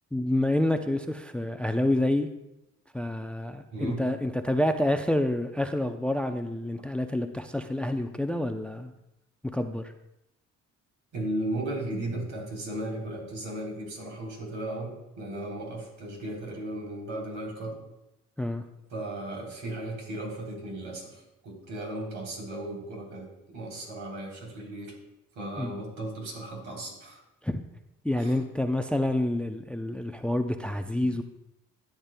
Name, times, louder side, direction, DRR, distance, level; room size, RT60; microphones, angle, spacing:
voice 1, 0.1-2.3 2.9-8.9 9.5-9.9 18.4-18.6 25.6-25.7 27.4-27.6 28.0-31.2, left 1 dB, 5° left, 7 dB, 0.5 m, -28 dB
voice 2, 11.1-17.8 18.9-24.9 25.4-27.2 28.2-28.3 31.0-31.1, right 1 dB, 75° right, -1 dB, 3.6 m, -36 dB
13.5 x 8.7 x 2.2 m, 0.88 s
cardioid pair, 90°, 30 cm